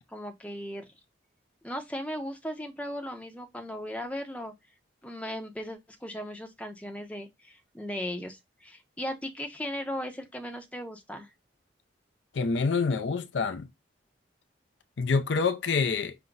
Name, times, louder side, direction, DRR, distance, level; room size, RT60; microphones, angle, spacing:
voice 1, 0.1-0.9 1.6-4.5 5.0-11.3, equal, 5° left, 0.6 m, -37 dB
voice 2, 12.3-13.7 15.0-16.2, left 4 dB, 75° left, 0.5 m, -26 dB
5.8 x 2.1 x 3.8 m
head